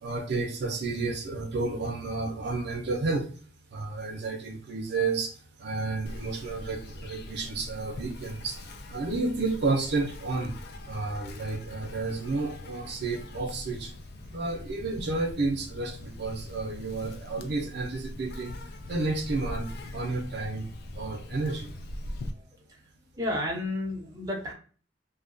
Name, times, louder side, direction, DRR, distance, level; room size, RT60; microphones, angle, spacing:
voice 1, 0.0-3.3 3.7-5.3 5.6-10.5 10.9-13.9 14.3-18.5 18.9-19.7 19.9-20.7 20.9-21.7, right 3 dB, 60° right, 2 dB, 0.5 m, -31 dB
Insect, 6.1-22.3, left 1 dB, 60° left, 0.4 m, -42 dB
voice 2, 22.2-22.8 23.1-24.5, left 1 dB, 20° right, -1 dB, 0.6 m, -32 dB
2.6 x 2.2 x 2.5 m, 0.41 s
head